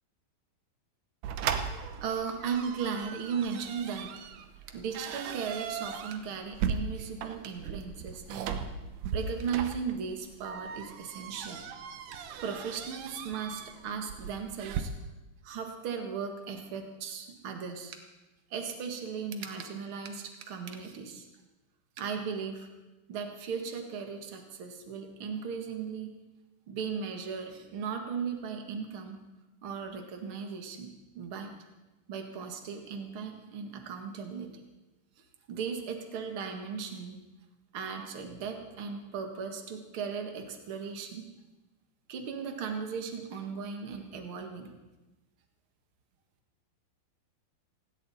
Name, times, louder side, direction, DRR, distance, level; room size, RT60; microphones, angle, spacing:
sound 1, 1.2-14.8, right 7 dB, 80° right, 1.8 m, -38 dB
voice 1, 1.7-4.1 4.7-8.6 9.1-11.6 12.4-14.9 15.4-18.0 18.5-21.3 22.0-22.7 23.1-26.1 26.7-29.2 29.6-31.5 32.1-34.5 35.5-37.2 37.7-41.2 42.1-44.7, right 6 dB, 55° right, 4 dB, 1.5 m, -37 dB
18.5 x 17.0 x 4.2 m, 1.1 s
omnidirectional pair, 4.9 m